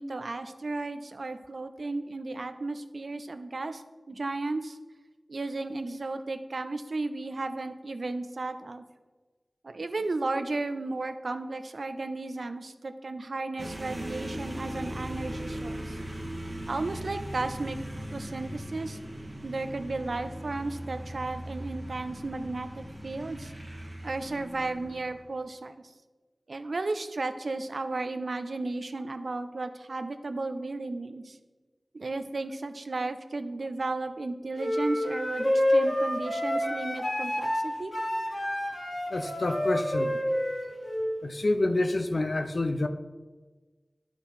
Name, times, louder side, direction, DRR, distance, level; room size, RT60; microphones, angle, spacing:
voice 1, 0.0-4.8 5.3-8.8 9.6-16.0 16.7-19.0 19.4-23.5 24.0-25.8 26.5-31.4 31.9-37.9, right 3 dB, 75° right, 10 dB, 0.5 m, -34 dB
sound 1, 13.6-25.3, right 1 dB, 25° right, 1.2 m, -39 dB
sound 2, 34.6-41.1, left 1 dB, 30° left, 2.1 m, -28 dB
voice 2, 39.1-40.2 41.2-42.9, left 2 dB, 65° left, 7 dB, 0.6 m, -28 dB
10.5 x 5.8 x 4.3 m, 1.3 s
wide cardioid pair, 50°, 0 cm